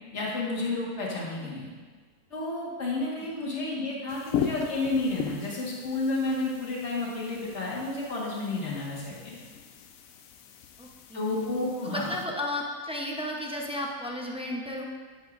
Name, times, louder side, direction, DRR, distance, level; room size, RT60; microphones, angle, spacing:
voice 1, 0.1-1.7 2.3-9.4 11.1-12.1, left 2 dB, 45° left, -4 dB, 2.0 m, -31 dB
sound 1, 4.1-12.3, left 7 dB, 70° left, 1.0 m, -38 dB
voice 2, 10.8-11.3 11.8-14.8, left 1 dB, 5° right, -1 dB, 0.4 m, -34 dB
11.0 x 7.7 x 2.6 m, 1.4 s
omnidirectional pair, 1.6 m